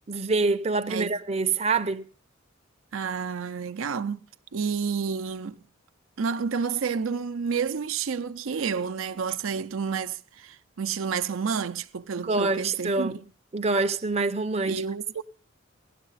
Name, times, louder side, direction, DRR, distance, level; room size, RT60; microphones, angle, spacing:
voice 1, 0.1-2.1 12.2-13.2 13.5-14.8, right 3 dB, 30° right, 0.5 m, -26 dB
voice 2, 2.9-4.2 4.5-5.6 6.2-13.1 14.7-15.2, right 6 dB, 90° right, 0.6 m, -30 dB
17.0 x 12.0 x 4.0 m
head